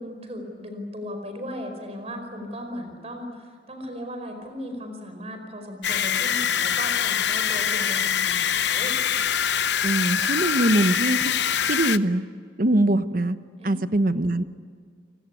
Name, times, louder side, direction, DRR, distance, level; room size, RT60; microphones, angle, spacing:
voice 1, 0.0-9.0 13.6-13.7, equal, 35° right, 6 dB, 4.9 m, -36 dB
sound 1, 5.8-12.0, left 8 dB, 75° left, 0.7 m, -24 dB
voice 2, 9.8-11.3 11.6-12.2 12.6-13.4 13.6-14.4, right 1 dB, 50° right, 11 dB, 1.0 m, -22 dB
29.5 x 19.5 x 8.4 m, 2.1 s
head